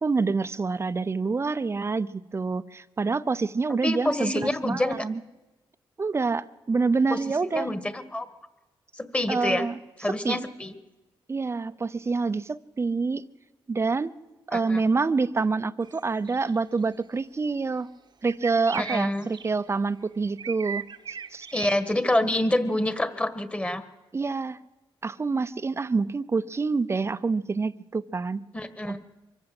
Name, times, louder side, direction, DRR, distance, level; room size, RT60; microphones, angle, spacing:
voice 1, 0.0-5.2 6.0-7.7 9.3-9.8 10.1-10.4 11.3-13.2 13.7-14.1 14.5-17.9 18.2-20.8 21.3-21.5 24.1-24.6 25.0-28.4 28.8-28.9, right 4 dB, 30° right, 14 dB, 0.7 m, -27 dB
voice 2, 3.8-5.0 7.1-7.2 7.5-8.3 9.0-9.7 10.0-10.7 14.5-14.8 18.7-19.3 21.5-23.8 28.5-29.0, left 1 dB, 15° left, 10 dB, 1.7 m, -27 dB
sound 1, 15.8-16.0 16.3-16.6 18.3-19.5 20.4-21.7, right 6 dB, 55° right, 1.0 m, -37 dB
24.0 x 15.0 x 7.9 m, 1.1 s
cardioid pair, 105°, 9 cm